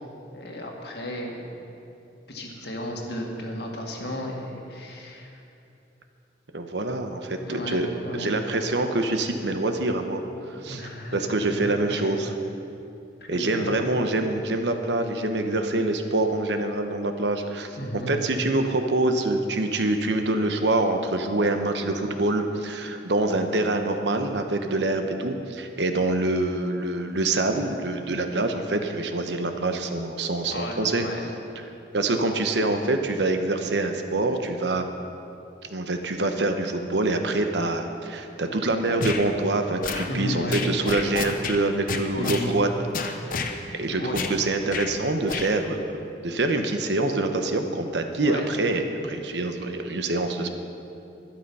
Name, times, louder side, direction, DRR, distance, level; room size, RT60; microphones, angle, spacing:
voice 1, 0.3-1.7 2.3-5.4 7.5-8.4 10.6-12.2 13.2-13.8 17.8-18.1 30.5-31.2 40.1-40.6 42.1-42.5 43.7-44.2 48.2-48.5, left 1 dB, 70° left, 0 dB, 1.9 m, -34 dB
voice 2, 6.5-7.9 8.2-10.8 11.1-12.3 13.3-17.8 18.1-31.1 31.9-34.9 35.7-42.7 43.4-43.5 43.8-44.0 44.3-45.8 46.2-50.5, right 2 dB, 80° right, 6 dB, 1.0 m, -25 dB
sound 1, 39.0-39.2 39.8-40.1 40.5-41.6 41.9-42.5 42.9-43.5 44.1-44.4 44.7-44.9 45.3-45.5, left 4 dB, 50° left, 0.8 m, -29 dB
12.0 x 11.5 x 5.5 m, 2.7 s
head